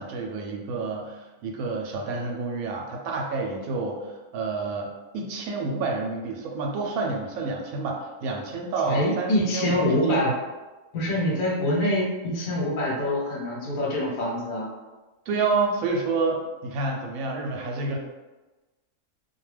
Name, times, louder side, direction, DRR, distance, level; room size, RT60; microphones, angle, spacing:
voice 1, 0.0-4.9 5.1-10.2 15.3-18.0, right 3 dB, 85° right, 0 dB, 1.0 m, -29 dB
voice 2, 8.9-10.3 10.9-14.7, left 1 dB, 75° left, -4 dB, 1.2 m, -25 dB
2.5 x 2.2 x 3.2 m, 1.2 s
omnidirectional pair, 1.5 m